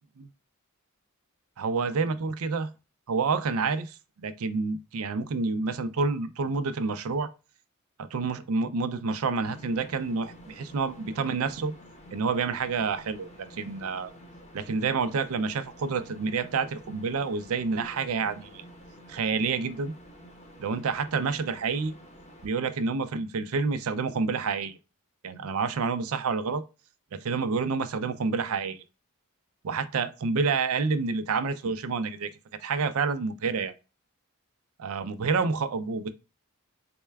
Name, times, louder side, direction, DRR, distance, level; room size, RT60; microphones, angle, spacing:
voice 1, 1.6-2.7 3.1-7.3 8.0-11.7 12.1-14.1 14.5-18.6 19.1-19.9 20.6-21.9 22.4-24.8 25.2-26.6 27.1-28.8 29.6-32.3 32.6-33.7 34.8-36.1, right 4 dB, 70° right, 0.5 m, -28 dB
sound 1, 9.4-22.5, equal, 30° left, 0.7 m, -50 dB
4.3 x 2.2 x 3.2 m
head